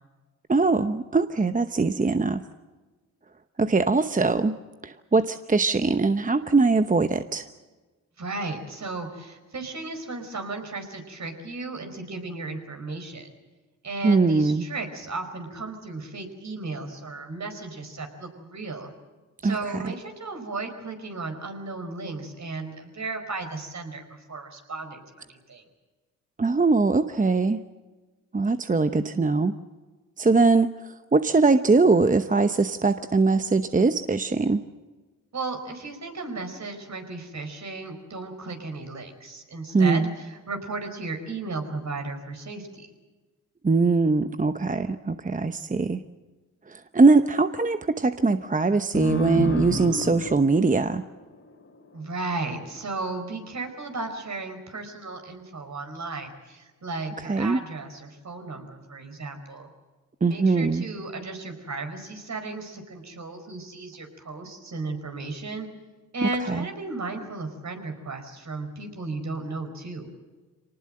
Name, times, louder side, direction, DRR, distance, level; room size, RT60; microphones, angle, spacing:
voice 1, 0.5-2.4 3.6-4.5 4.8-7.5 14.0-14.6 19.4-19.8 26.4-27.6 28.3-29.5 30.2-34.6 39.7-40.1 43.6-46.0 46.7-51.0 57.3-57.6 60.2-60.9 66.2-66.7, right 3 dB, 25° right, 10 dB, 0.9 m, -22 dB
voice 2, 8.2-13.3 13.8-18.9 19.4-25.6 35.3-42.9 51.9-59.7 60.3-65.7 66.1-70.1, right 3 dB, 55° right, 5 dB, 4.9 m, -35 dB
sound 1, 48.9-52.1, left 2 dB, 40° left, 3.1 m, -31 dB
25.0 x 19.5 x 7.6 m, 1.3 s
cardioid pair, 55°, 33 cm